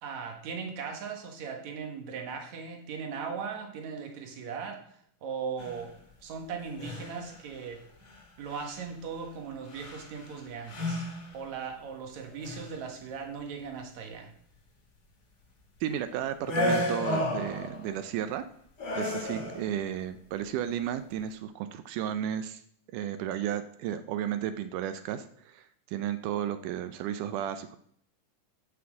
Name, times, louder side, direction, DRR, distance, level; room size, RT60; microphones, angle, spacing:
voice 1, 0.0-5.9 6.2-7.8 8.4-11.1 11.3-14.3, right 6 dB, 65° right, 3 dB, 2.9 m, -38 dB
sound 1, 5.6-5.9 6.7-7.4 8.1-8.2 8.5-8.8 9.7-10.4 10.7-11.4 12.3-12.8 16.4-17.9 18.8-19.8, left 1 dB, 45° left, 3.0 m, -32 dB
voice 2, 15.8-18.5 18.9-22.6 22.9-27.8, right 10 dB, 85° right, 10 dB, 2.2 m, -33 dB
9.6 x 6.0 x 7.5 m, 0.65 s
omnidirectional pair, 3.6 m